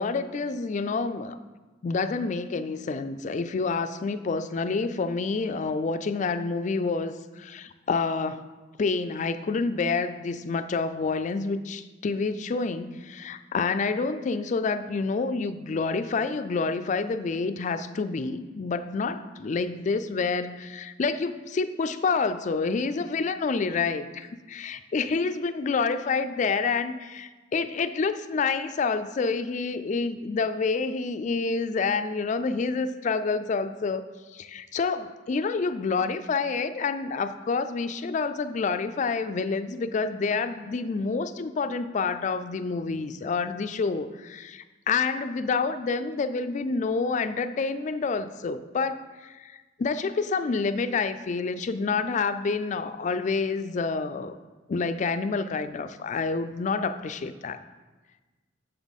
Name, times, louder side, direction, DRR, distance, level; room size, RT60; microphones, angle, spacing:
voice 1, 0.0-1.4 1.8-8.5 8.8-34.0 34.3-54.4 54.7-57.6, left 4 dB, 40° left, 12 dB, 0.3 m, -28 dB
7.1 x 6.8 x 4.1 m, 1.3 s
head